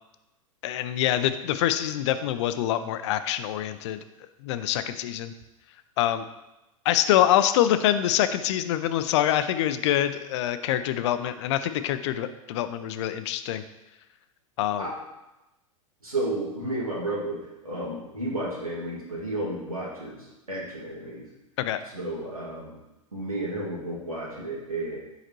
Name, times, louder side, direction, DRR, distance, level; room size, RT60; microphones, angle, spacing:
voice 1, 0.6-4.0 4.4-5.3 6.0-6.2 6.9-13.6 14.6-14.9 21.6-21.8, left 11 dB, 55° left, 11 dB, 0.5 m, -25 dB
voice 2, 16.0-21.2 21.9-22.8 23.1-25.0, right 1 dB, 90° right, -5 dB, 2.0 m, -32 dB
6.5 x 5.0 x 3.0 m, 0.97 s
figure-of-eight pair, 95°, 18 cm